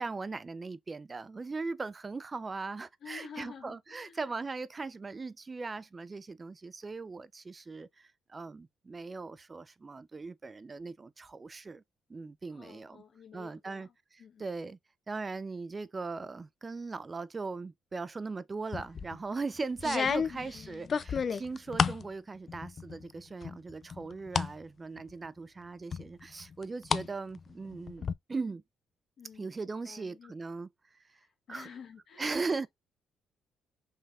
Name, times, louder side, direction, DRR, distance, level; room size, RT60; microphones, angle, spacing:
voice 1, 0.0-11.8 12.1-13.0 13.3-14.8 15.1-28.6 29.4-31.0 31.5-31.7 32.2-32.7, right 4 dB, 30° right, 0.4 m, -39 dB
voice 2, 3.0-4.3 12.5-13.9 14.2-14.5 20.3-21.0 29.2-30.3 31.1-32.4, left 6 dB, 60° left, 1.2 m, -51 dB
sound 1, 18.7-19.2 19.8-22.1 22.5-23.1 23.4-24.5 25.0-25.1 25.9-27.1 27.4-28.1, left 6 dB, 45° left, 0.4 m, -31 dB
5.5 x 3.3 x 2.4 m
cardioid pair, 90°, 0 cm